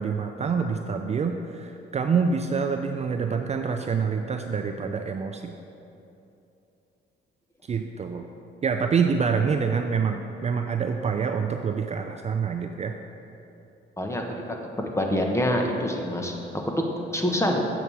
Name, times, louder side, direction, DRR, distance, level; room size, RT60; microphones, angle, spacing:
voice 1, 0.0-5.5 7.7-8.3 8.6-13.0, right 5 dB, 35° right, 5 dB, 0.4 m, -26 dB
voice 2, 14.0-14.4 14.8-16.3 16.8-16.9 17.1-17.6, left 1 dB, 15° left, 1 dB, 1.1 m, -25 dB
7.0 x 7.0 x 4.8 m, 2.8 s
cardioid pair, 90°, 20 cm